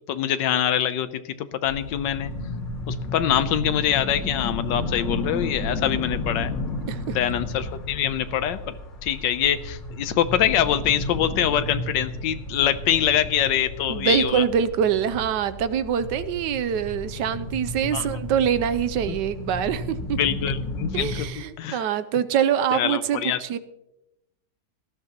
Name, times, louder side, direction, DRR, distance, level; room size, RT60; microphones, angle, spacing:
voice 1, 0.1-2.3 2.9-6.5 7.1-14.4 17.9-18.2 19.1-19.2 20.2-21.3 21.6-21.8 22.7-23.4, left 10 dB, 90° left, 11 dB, 1.4 m, -24 dB
sound 1, 1.6-21.2, left 1 dB, 55° left, 2.3 m, -33 dB
voice 2, 13.9-20.2 20.9-23.6, right 8 dB, 80° right, 14 dB, 1.3 m, -24 dB
18.0 x 13.5 x 2.9 m, 0.91 s
omnidirectional pair, 1.9 m